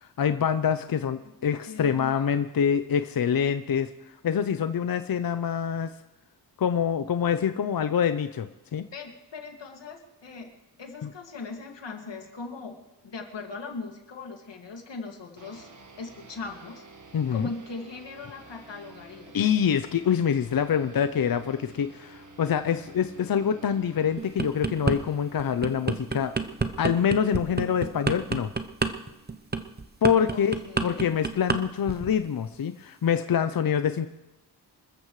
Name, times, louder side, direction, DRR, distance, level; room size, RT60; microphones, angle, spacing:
voice 1, 0.0-5.9 6.6-8.9 11.0-11.1 17.1-17.5 19.3-26.3 26.8-28.5 30.0-34.1, left 8 dB, 55° left, 10 dB, 0.6 m, -26 dB
voice 2, 1.7-2.4 8.9-10.5 10.8-12.8 13.0-15.7 16.0-16.8 17.3-19.3 30.3-31.1, left 4 dB, 90° left, 2 dB, 2.3 m, -39 dB
sound 1, 15.4-30.2, right 2 dB, 45° right, 1.5 m, -51 dB
sound 2, 24.2-25.0 25.4-31.6 31.9-32.2, right 4 dB, 25° right, 0.8 m, -28 dB
27.0 x 14.0 x 3.2 m, 0.96 s
wide cardioid pair, 135°, 42 cm